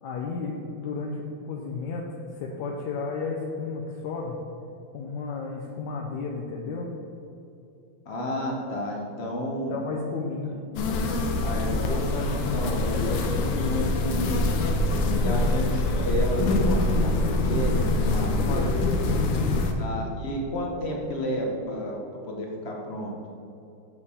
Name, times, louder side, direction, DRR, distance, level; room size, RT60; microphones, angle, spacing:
voice 1, 0.0-4.4 4.9-6.9 9.7-10.6 15.0-15.3 18.1-19.6, left 4 dB, 70° left, -1 dB, 1.1 m, -33 dB
voice 2, 8.1-9.8 11.4-14.8 15.2-18.7 19.8-22.0 22.2-23.1, equal, 50° left, -1 dB, 0.8 m, -31 dB
sound 1, 10.8-19.7, left 2 dB, 90° left, 1.5 m, -24 dB
6.8 x 5.0 x 4.2 m, 2.7 s
omnidirectional pair, 2.1 m